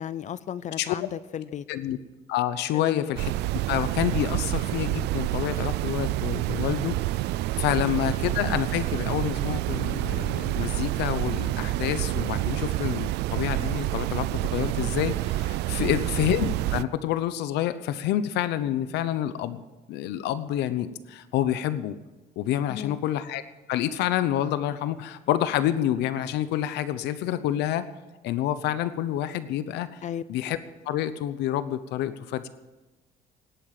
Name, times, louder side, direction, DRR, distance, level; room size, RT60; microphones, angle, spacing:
voice 1, 0.0-1.6 2.7-3.1 7.7-8.0 15.8-16.1 22.7-23.0 30.0-30.2, left 9 dB, 45° left, 17 dB, 0.5 m, -35 dB
voice 2, 2.3-3.3 3.7-7.0 7.6-19.6 19.9-22.0 22.4-23.4 23.7-27.9 28.2-29.9 30.3-30.6 30.9-32.5, left 12 dB, 85° left, 13 dB, 0.8 m, -28 dB
sound 1, 3.2-16.8, right 16 dB, 80° right, 0.4 m, -28 dB
18.5 x 8.8 x 7.6 m, 1.1 s
cardioid pair, 110°, 17 cm